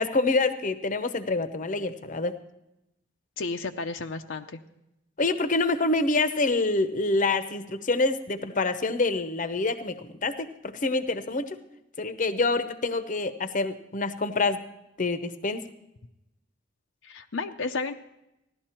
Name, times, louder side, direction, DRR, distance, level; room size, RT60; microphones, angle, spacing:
voice 1, 0.0-2.4 5.2-11.6 12.0-14.6 15.0-15.6, left 3 dB, 45° left, 11 dB, 0.8 m, -26 dB
voice 2, 3.4-4.6 17.0-17.9, left 4 dB, 75° left, 6 dB, 0.7 m, -32 dB
16.0 x 12.0 x 4.4 m, 0.88 s
head